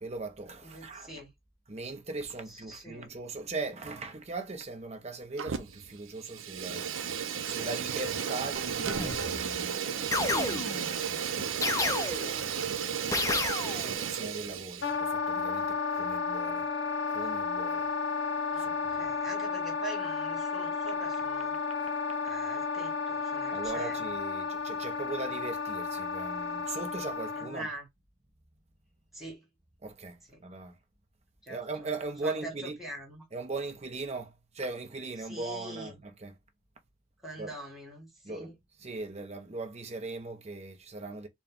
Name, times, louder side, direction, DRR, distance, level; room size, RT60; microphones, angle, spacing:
voice 1, 0.0-1.1 1.7-6.9 7.4-12.1 13.7-16.7 17.1-17.9 18.6-18.9 23.5-27.7 29.8-30.7 31.5-32.8 33.3-36.3 37.4-37.5 38.2-38.5 38.8-41.3, right 3 dB, 30° right, 0.8 m, -39 dB
voice 2, 0.6-1.3 2.5-3.1 18.5-21.6 22.2-24.1 27.4-27.9 29.1-29.5 30.3-30.4 31.4-31.9 32.2-33.3 35.2-35.9 37.2-38.5, right 1 dB, ahead, 1.7 m, -43 dB
Fire, 5.4-5.9 6.2-14.9, right 7 dB, 75° right, 0.5 m, -33 dB
sound 1, 9.0-9.5 10.1-11.0 11.6-12.5 13.1-14.0, left 3 dB, 15° left, 0.5 m, -31 dB
Wind instrument woodwind instrument, 14.8-27.7, left 5 dB, 55° left, 0.7 m, -33 dB
4.3 x 2.2 x 3.5 m
head